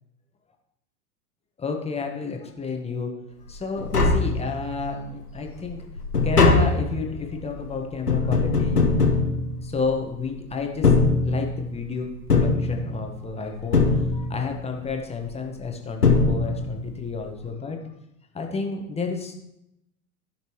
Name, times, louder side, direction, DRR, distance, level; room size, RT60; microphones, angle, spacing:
voice 1, 1.6-3.1 3.5-5.8 6.2-8.8 9.6-10.9 11.2-17.8 18.3-19.3, left 4 dB, 15° left, 2 dB, 1.3 m, -31 dB
Tap, 3.5-3.6 3.8-4.9 5.3-10.1 10.7-11.7 12.3-13.3 13.7-14.6 15.6-15.7 16.0-16.9 17.1-17.2, left 4 dB, 85° left, 1.3 m, -21 dB
15.0 x 5.9 x 3.1 m, 0.83 s
figure-of-eight pair, 90°, 45 cm